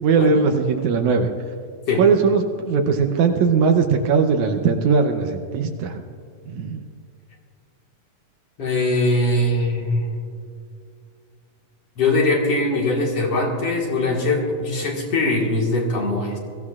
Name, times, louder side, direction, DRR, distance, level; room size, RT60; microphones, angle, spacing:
voice 1, 0.0-1.3 2.0-6.0 6.5-6.8, right 5 dB, 75° right, 5 dB, 2.0 m, -19 dB
voice 2, 8.6-10.2 12.0-16.4, left 2 dB, 50° left, -2 dB, 2.4 m, -21 dB
22.0 x 15.5 x 2.4 m, 2.3 s
omnidirectional pair, 3.7 m